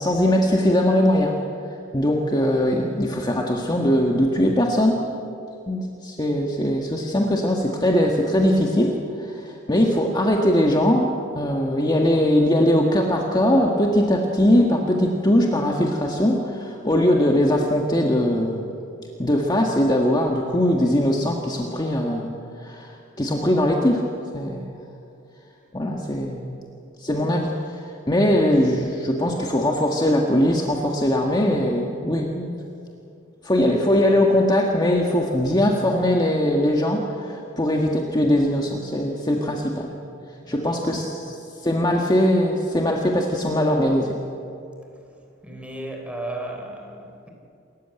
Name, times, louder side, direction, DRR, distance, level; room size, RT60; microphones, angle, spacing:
voice 1, 0.0-1.4 1.9-5.0 5.7-18.7 19.2-22.3 22.6-24.1 24.3-24.7 25.7-26.6 27.0-27.8 28.1-32.5 33.4-39.9 40.5-41.3 41.6-44.2, left 1 dB, 20° left, 0 dB, 1.6 m, -21 dB
voice 2, 40.4-40.8 45.4-47.3, right 1 dB, 5° right, 2 dB, 3.6 m, -34 dB
28.0 x 14.0 x 9.0 m, 2.6 s
head